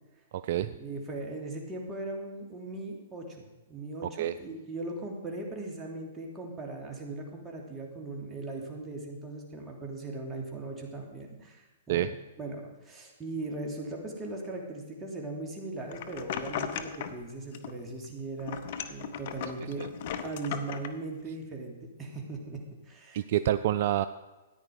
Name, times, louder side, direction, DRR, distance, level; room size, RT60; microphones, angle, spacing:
voice 1, 0.6-12.1 12.4-18.6 18.9-19.9 20.2-23.3, right 2 dB, 15° right, 0 dB, 2.9 m, -39 dB
sound 1, 15.9-17.2 17.5-18.1 18.4-20.9, left 8 dB, 55° left, 1.0 m, -37 dB
voice 2, 23.1-24.0, right 12 dB, 55° right, 13 dB, 0.4 m, -27 dB
14.0 x 9.9 x 5.2 m, 1.2 s
hypercardioid pair, 115°, 0 cm